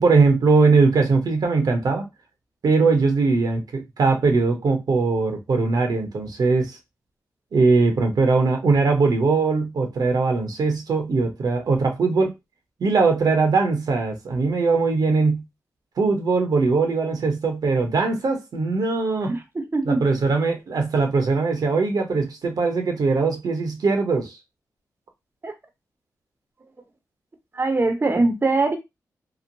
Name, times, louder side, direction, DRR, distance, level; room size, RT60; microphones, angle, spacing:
voice 1, 0.0-2.0 2.6-6.8 7.5-12.3 12.8-15.4 16.0-19.4 19.8-24.4, right 4 dB, 65° right, 0.8 m, -20 dB
voice 2, 19.3-20.0 25.4-25.5 27.5-28.8, right 3 dB, 35° right, 0.7 m, -22 dB
3.0 x 2.0 x 2.6 m
cardioid pair, 50°, 7 cm